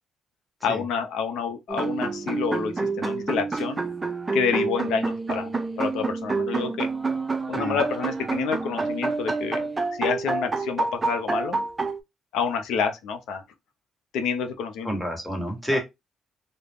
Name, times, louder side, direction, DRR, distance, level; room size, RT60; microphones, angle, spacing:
voice 1, 0.6-3.8 4.3-6.9 7.5-9.7 10.0-11.6 12.3-13.4 14.1-14.9 15.7-15.8, left 6 dB, 85° left, 0.5 m, -28 dB
sound 1, 1.7-12.0, right 3 dB, 25° right, 0.4 m, -28 dB
voice 2, 14.8-15.8, equal, 5° left, 1.1 m, -28 dB
2.3 x 2.0 x 3.3 m
cardioid pair, 90°, 0 cm